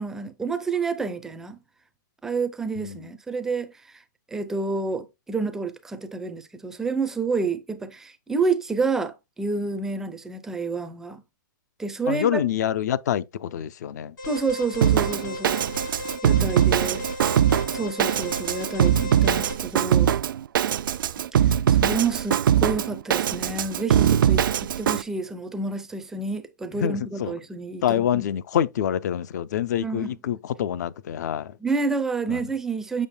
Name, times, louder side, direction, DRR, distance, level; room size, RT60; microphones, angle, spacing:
voice 1, 0.0-1.6 2.2-3.7 4.3-11.2 11.8-12.5 14.3-15.6 16.2-17.0 17.7-20.1 21.3-21.4 21.7-28.3 29.8-30.2 31.6-33.1, right 4 dB, 5° right, 0.4 m, -29 dB
voice 2, 12.1-14.1 26.8-27.3 27.8-31.6 32.3-32.5, left 10 dB, 55° left, 0.5 m, -26 dB
Alarm, 14.2-19.5, left 1 dB, 75° left, 4.6 m, -35 dB
Drum kit, 14.8-25.0, right 9 dB, 80° right, 0.4 m, -22 dB
7.2 x 6.3 x 2.2 m
hypercardioid pair, 165°, 11 cm